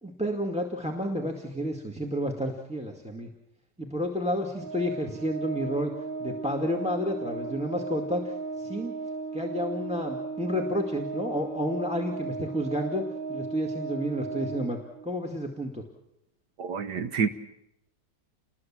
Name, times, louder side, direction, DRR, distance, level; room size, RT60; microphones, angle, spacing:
voice 1, 0.0-3.3 3.8-5.9 6.2-8.9 9.3-13.0 13.3-14.8 15.0-15.8, equal, 5° right, 2 dB, 1.9 m, -30 dB
Organ, 4.5-15.3, right 4 dB, 35° right, 1.0 m, -36 dB
voice 2, 16.6-17.3, right 6 dB, 75° right, 10 dB, 1.7 m, -28 dB
29.0 x 21.0 x 7.5 m, 0.86 s
omnidirectional pair, 1.8 m